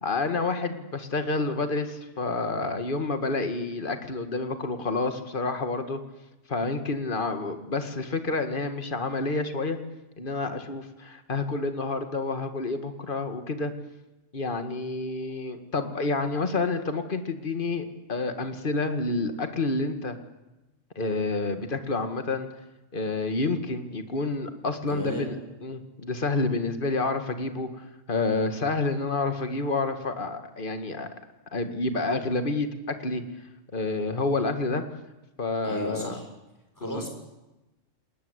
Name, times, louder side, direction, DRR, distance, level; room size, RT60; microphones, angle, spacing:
voice 1, 0.0-6.0 6.5-9.8 10.2-13.7 14.3-20.2 21.0-22.5 22.9-25.4 25.6-31.1 31.5-33.2 33.7-34.8 35.4-36.2 36.8-37.0, left 3 dB, 40° left, 8 dB, 2.2 m, -29 dB
voice 2, 24.9-25.3 35.6-36.3 36.8-37.1, equal, 15° left, 2 dB, 6.9 m, -34 dB
30.0 x 20.0 x 8.2 m, 1.0 s
omnidirectional pair, 1.3 m